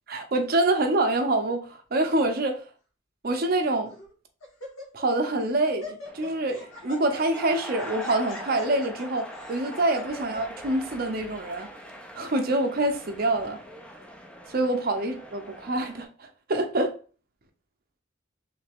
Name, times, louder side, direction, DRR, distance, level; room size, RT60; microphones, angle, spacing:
voice 1, 0.1-2.6 3.2-3.9 4.9-11.7 12.1-13.6 14.5-17.0, right 2 dB, 45° right, 0.6 m, -26 dB
Laughter, 2.1-2.5 3.3-3.4 3.9-4.1 4.4-5.2 5.4-10.4, left 3 dB, 90° left, 1.4 m, -43 dB
sound 1, 6.0-16.0, right 1 dB, 5° left, 0.4 m, -42 dB
3.2 x 3.2 x 3.4 m
head